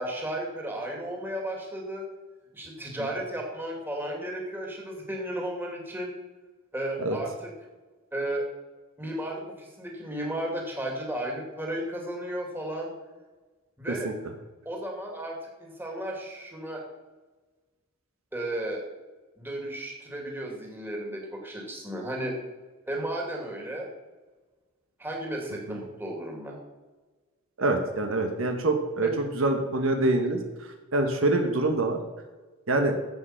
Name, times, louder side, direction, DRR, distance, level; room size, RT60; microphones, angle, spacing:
voice 1, 0.0-2.0 2.5-6.1 6.7-7.5 8.1-8.5 9.0-12.9 13.8-14.1 14.6-16.8 18.3-18.8 19.4-22.4 22.9-23.9 25.0-26.6 29.0-29.1, right 1 dB, 10° right, -1 dB, 2.4 m, -34 dB
voice 2, 27.6-29.1 29.3-30.4 30.9-32.0 32.7-32.9, right 2 dB, 70° right, 4 dB, 1.3 m, -25 dB
10.5 x 7.9 x 5.9 m, 1.3 s
head